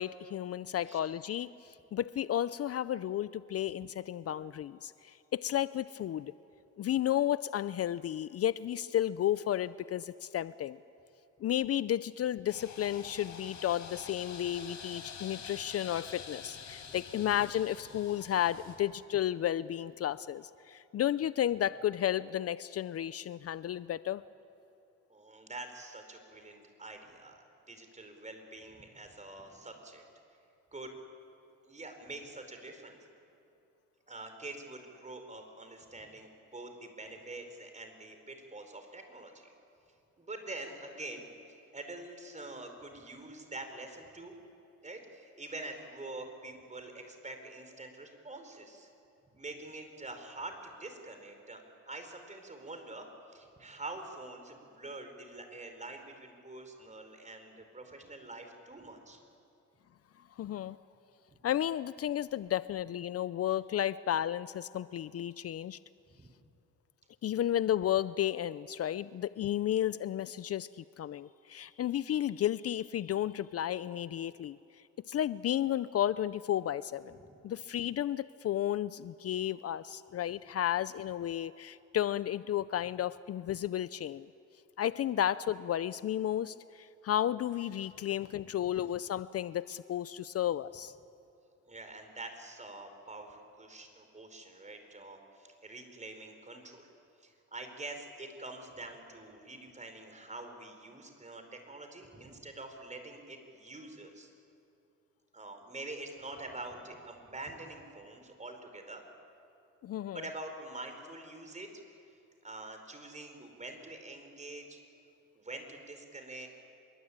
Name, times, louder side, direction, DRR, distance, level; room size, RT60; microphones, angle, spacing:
voice 1, 0.0-6.3 6.8-10.8 11.4-24.2 60.4-60.8 61.4-65.8 67.2-74.6 75.1-77.2 77.4-84.3 84.8-90.9 109.8-110.2, left 11 dB, 50° left, 17 dB, 0.5 m, -33 dB
sound 1, 12.5-18.8, left 6 dB, 70° left, 4.7 m, -47 dB
voice 2, 25.1-30.0 30.7-30.9 31.7-33.0 34.1-39.3 40.2-41.3 41.7-44.3 44.8-48.9 49.3-59.2 61.3-61.4 66.1-66.3 77.1-77.3 88.4-88.7 91.7-96.9 97.2-104.3 105.3-109.0 110.1-112.0 112.4-114.8 115.3-116.5, right 2 dB, 25° right, 6 dB, 5.0 m, -46 dB
27.0 x 23.0 x 8.8 m, 2.6 s
cardioid pair, 90°, 30 cm